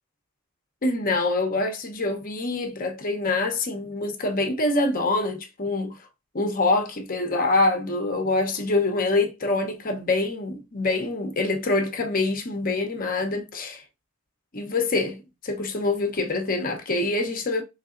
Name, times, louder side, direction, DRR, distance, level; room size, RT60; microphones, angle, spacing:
voice 1, 0.8-5.9 6.3-13.8 14.5-17.6, left 2 dB, 40° left, 0.7 m, -25 dB
3.9 x 3.2 x 2.5 m
head